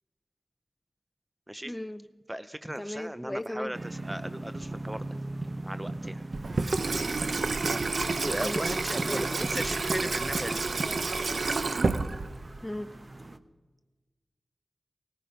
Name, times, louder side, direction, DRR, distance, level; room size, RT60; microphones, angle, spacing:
voice 1, 1.6-2.1 2.8-3.7 6.9-7.1 7.6-7.8 8.4-8.6 9.1-9.3 12.6-12.9, left 1 dB, 15° left, 12 dB, 0.9 m, -36 dB
voice 2, 2.3-5.0 5.6-6.2 6.8-7.2 7.9-10.7, right 1 dB, 15° right, 12 dB, 0.6 m, -37 dB
sound 1, 3.7-13.4, right 2 dB, 40° right, 0.9 m, -38 dB
Water tap faucet / Sink (filling or washing), 6.3-12.6, right 3 dB, 75° right, 0.7 m, -29 dB
18.5 x 14.5 x 5.2 m, 1.3 s
cardioid pair, 50°, 0 cm